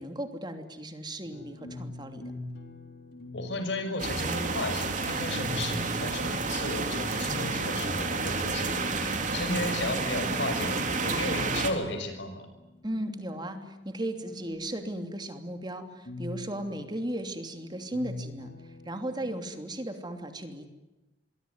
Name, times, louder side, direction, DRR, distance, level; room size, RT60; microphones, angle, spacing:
voice 1, 0.0-2.2 12.8-20.7, right 1 dB, 25° right, 6 dB, 2.8 m, -36 dB
sound 1, 1.2-19.6, left 2 dB, 60° left, 4.0 m, -45 dB
voice 2, 3.3-12.5, left 2 dB, 80° left, 8 dB, 6.0 m, -34 dB
sound 2, 4.0-11.7, right 3 dB, 45° right, 3.6 m, -30 dB
26.5 x 23.0 x 9.6 m, 1.0 s
head